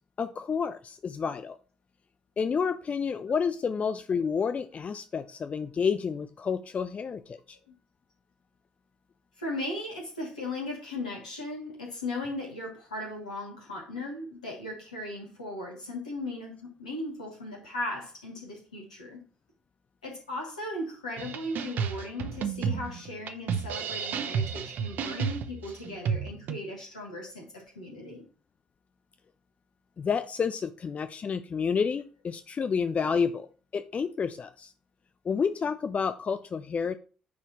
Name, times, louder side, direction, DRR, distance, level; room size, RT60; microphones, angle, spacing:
voice 1, 0.2-1.6 2.4-7.6 30.0-33.5 33.7-34.7 35.2-36.9, left 6 dB, 35° left, 10 dB, 0.5 m, -30 dB
voice 2, 9.4-19.2 20.0-28.3, left 2 dB, 85° left, -2 dB, 2.3 m, -37 dB
sound 1, 21.2-26.6, right 7 dB, 55° right, 0.7 m, -32 dB
9.4 x 4.2 x 3.0 m, 0.38 s
figure-of-eight pair, 45°, 4 cm